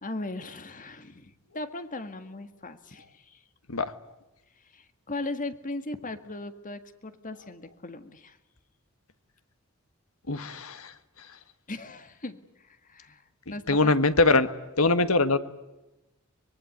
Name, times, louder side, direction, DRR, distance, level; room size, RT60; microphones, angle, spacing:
voice 1, 0.0-3.4 4.6-8.4 11.7-13.9, left 2 dB, 40° left, 10 dB, 1.8 m, -38 dB
voice 2, 10.3-10.9 13.7-14.5 14.8-15.4, left 3 dB, 70° left, 12 dB, 1.6 m, -22 dB
24.5 x 22.0 x 9.3 m, 1.0 s
head